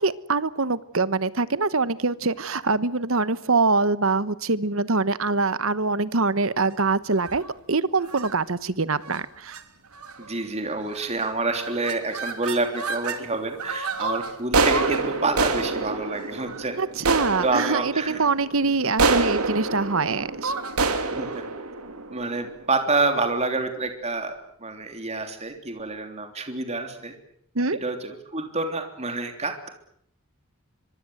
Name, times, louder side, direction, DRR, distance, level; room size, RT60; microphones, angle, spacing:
voice 1, 0.0-7.4 7.7-9.6 16.8-20.5 27.5-27.8, right 3 dB, 60° right, 16 dB, 1.1 m, -24 dB
sound 1, 7.1-7.5 8.1-8.3 9.0-9.2 9.5-9.6 9.9-10.3 10.9-11.2 11.5-13.2 13.6-22.8, right 3 dB, 85° right, 2.9 m, -27 dB
voice 2, 10.2-16.7 17.4-18.2 21.1-21.4 22.1-24.3 24.6-27.1 27.8-29.7, right 3 dB, 30° right, 5 dB, 3.3 m, -28 dB
25.0 x 24.0 x 8.0 m, 0.69 s
head